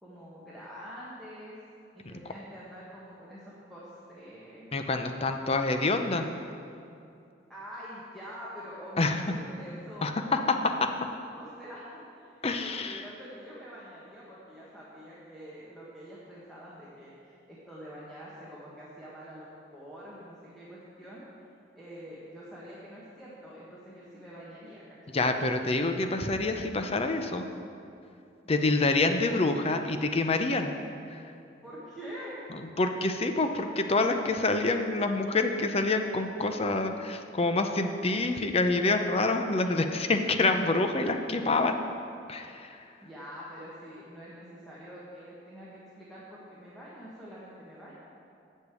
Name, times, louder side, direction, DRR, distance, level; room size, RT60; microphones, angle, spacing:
voice 1, 0.0-1.6 1.9-4.7 7.5-10.4 11.3-21.2 21.7-25.2 28.4-28.7 31.6-32.4 42.7-47.9, equal, ahead, -9 dB, 1.4 m, -46 dB
voice 2, 4.7-6.3 9.0-9.2 10.0-10.4 10.8-10.9 12.4-13.0 25.1-27.5 28.5-30.7 31.1-31.2 32.8-41.8 42.3-42.8, left 2 dB, 35° left, 6 dB, 0.6 m, -27 dB
8.1 x 6.6 x 8.3 m, 2.6 s
head